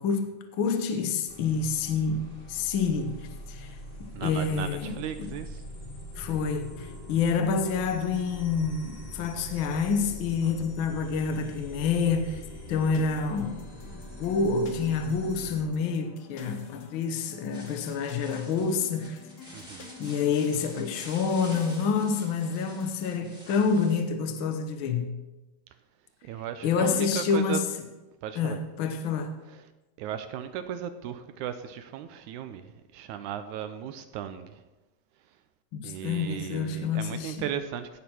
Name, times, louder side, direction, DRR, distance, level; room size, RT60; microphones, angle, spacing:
voice 1, 0.0-2.2 2.5-3.2 3.5-3.7 4.2-5.3 6.1-12.4 12.7-13.6 14.2-19.2 20.0-25.1 26.6-27.7 28.3-29.3 35.7-37.5, left 5 dB, 90° left, 1.1 m, -28 dB
sound 1, 1.3-15.6, equal, 20° left, 1.1 m, -43 dB
voice 2, 4.2-5.6 19.5-19.9 26.2-27.6 28.2-28.6 30.0-32.7 32.9-34.6 35.8-38.0, right 9 dB, 80° right, 1.8 m, -36 dB
sound 2, 12.9-23.2, left 5 dB, 60° left, 1.8 m, -49 dB
sound 3, 17.5-24.0, equal, ahead, 1.2 m, -49 dB
16.5 x 6.3 x 4.4 m
omnidirectional pair, 3.8 m